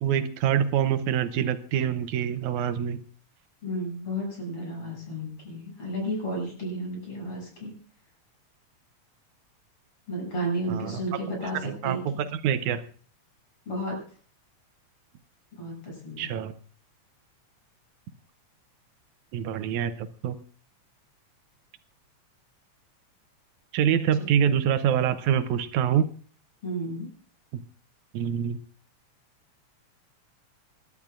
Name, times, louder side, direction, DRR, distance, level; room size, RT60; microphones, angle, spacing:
voice 1, 0.0-3.0 10.7-11.0 11.6-12.8 16.2-16.5 19.3-20.4 23.7-26.1 28.1-28.6, right 9 dB, 80° right, 10 dB, 2.2 m, -25 dB
voice 2, 3.6-7.7 10.1-12.0 13.7-14.0 15.6-16.4 24.2-24.3 26.6-27.1, equal, 50° left, -1 dB, 8.2 m, -32 dB
27.5 x 12.0 x 2.5 m, 0.42 s
omnidirectional pair, 3.3 m